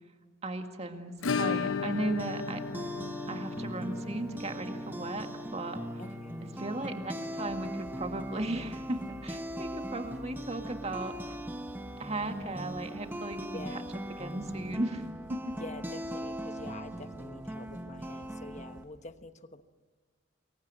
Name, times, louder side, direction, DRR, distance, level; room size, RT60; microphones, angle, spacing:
voice 1, 0.4-2.6 3.3-5.9 6.6-11.4 12.0-13.8 14.2-15.6, right 2 dB, 35° right, 5 dB, 2.1 m, -36 dB
Acoustic guitar / Strum, 1.2-9.8 10.1-10.2 10.5-10.6 10.9-11.0 13.1-13.2 14.3-14.4, left 5 dB, 90° left, 0.7 m, -37 dB
sound 1, 1.9-18.8, equal, 10° right, 1.1 m, -40 dB
voice 2, 6.0-6.4 13.5-14.0 15.5-19.6, left 2 dB, 35° left, 9 dB, 1.2 m, -46 dB
forgot what i named this track, 7.5-18.8, equal, 75° right, 7.7 m, -54 dB
27.5 x 22.5 x 7.7 m, 1.5 s
head